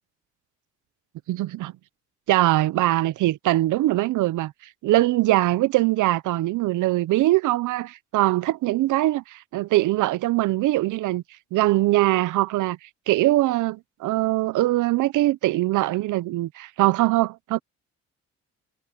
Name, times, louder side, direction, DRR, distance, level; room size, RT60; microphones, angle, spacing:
voice 1, 1.3-1.7 2.3-4.5 4.8-11.2 11.5-12.8 13.1-17.6, right 17 dB, 80° right, 0.7 m, -22 dB
cardioid pair, 90°, 30 cm